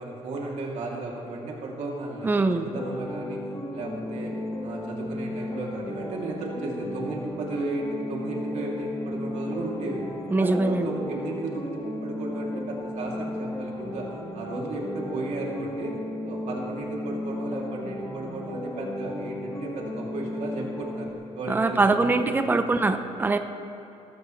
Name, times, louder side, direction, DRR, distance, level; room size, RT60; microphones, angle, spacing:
voice 1, 0.0-3.4 3.7-4.3 4.6-10.1 10.4-15.9 16.2-22.6, right 2 dB, 65° right, -3 dB, 2.8 m, -35 dB
voice 2, 2.2-2.7 10.3-10.9 21.5-23.4, right 3 dB, 15° right, 8 dB, 0.7 m, -23 dB
sound 1, 2.7-21.1, left 1 dB, 30° left, 1.5 m, -34 dB
19.5 x 14.5 x 3.2 m, 2.9 s
cardioid pair, 135°, 12 cm